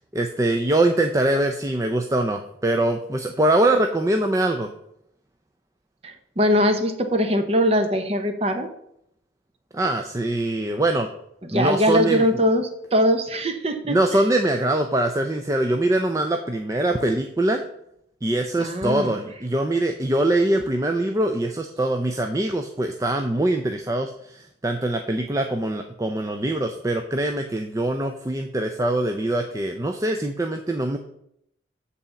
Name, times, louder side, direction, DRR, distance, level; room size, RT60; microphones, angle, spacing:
voice 1, 0.1-4.7 9.7-11.1 11.5-12.4 13.9-17.6 18.2-31.0, right 1 dB, 15° right, 5 dB, 0.4 m, -23 dB
voice 2, 6.0-8.7 11.4-14.2 18.6-19.2, equal, 30° right, 7 dB, 0.9 m, -22 dB
7.8 x 4.1 x 7.0 m, 0.75 s
head